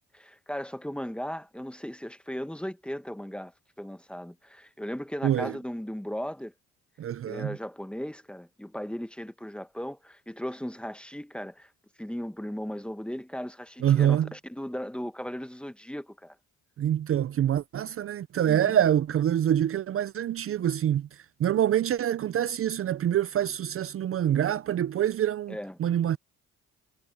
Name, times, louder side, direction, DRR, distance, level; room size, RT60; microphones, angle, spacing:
voice 1, 0.1-3.5 3.8-6.5 7.2-11.7 12.0-16.4 18.5-18.8 25.5-25.8, equal, 5° left, 1.1 m, -37 dB
voice 2, 5.2-5.6 7.0-7.6 13.8-14.3 16.8-26.2, right 10 dB, 50° right, 0.5 m, -26 dB
cardioid pair, 90°, 30 cm